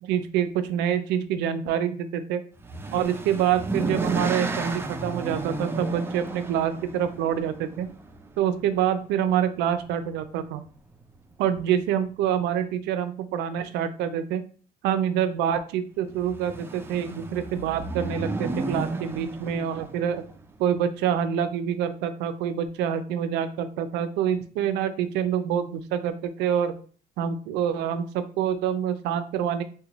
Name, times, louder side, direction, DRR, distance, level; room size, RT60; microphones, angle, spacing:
voice 1, 0.0-2.4 2.9-7.9 8.4-10.6 11.4-14.4 14.8-20.2 20.6-26.7 27.2-29.6, right 9 dB, 90° right, 10 dB, 0.4 m, -26 dB
sound 1, 2.6-8.7 9.8-10.2 10.5-10.6 10.9-11.0 16.1-20.5, right 2 dB, 15° right, 0.3 m, -33 dB
2.9 x 2.2 x 3.9 m, 0.42 s
cardioid pair, 110°, 17 cm